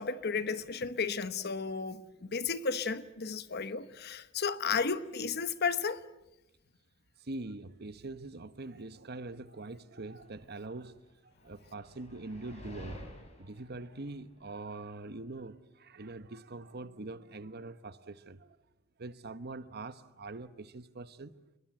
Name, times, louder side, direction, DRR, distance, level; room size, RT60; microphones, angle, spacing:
voice 1, 0.0-6.0, left 5 dB, 55° left, 1.0 m, -33 dB
voice 2, 7.2-10.9 11.4-13.0 13.4-18.6 19.0-21.3, right 2 dB, 50° right, 1.1 m, -43 dB
sound 1, 10.2-15.1, equal, 35° left, 5.3 m, -51 dB
28.5 x 22.0 x 7.8 m
head